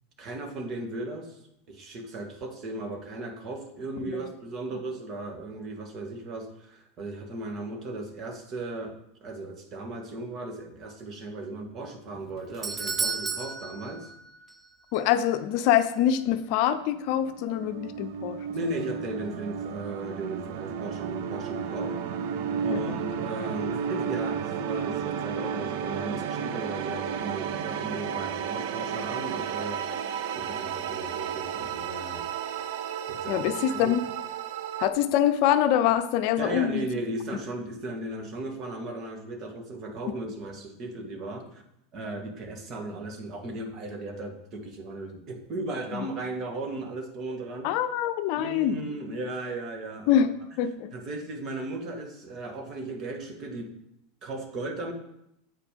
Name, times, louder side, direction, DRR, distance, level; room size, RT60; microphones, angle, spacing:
voice 1, 0.2-1.4 1.7-9.0 9.2-14.1 18.5-22.3 22.6-32.3 33.1-33.9 36.4-41.6 41.9-47.7 48.4-50.2 50.9-53.7 54.2-54.9, right 2 dB, 40° right, 4 dB, 1.6 m, -36 dB
Doorbell, 12.1-14.7 14.9-15.0 15.8-15.9, right 5 dB, 25° right, 0.7 m, -33 dB
voice 2, 14.9-18.5 22.7-23.0 33.3-34.0 34.8-36.9 40.2-40.3 45.9-46.1 47.6-48.9 50.1-50.3 50.6-50.9, left 10 dB, 60° left, 10 dB, 0.5 m, -25 dB
sound 1, 16.6-34.9, right 7 dB, 65° right, 0.6 m, -33 dB
8.1 x 5.0 x 5.1 m, 0.81 s
hypercardioid pair, 95°, 0 cm